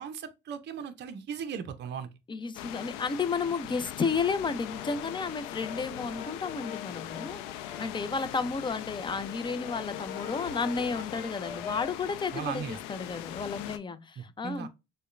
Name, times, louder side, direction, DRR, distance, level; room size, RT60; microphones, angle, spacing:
voice 1, 0.0-2.1 12.3-12.8 14.2-14.7, right 8 dB, 35° right, 0.6 m, -37 dB
voice 2, 2.3-14.7, left 4 dB, 15° left, 0.5 m, -32 dB
sound 1, 2.5-13.8, left 13 dB, 70° left, 0.6 m, -41 dB
Brass instrument, 4.4-8.1 8.4-12.1, left 8 dB, 90° left, 1.1 m, -44 dB
6.4 x 2.2 x 2.4 m
hypercardioid pair, 70°, 29 cm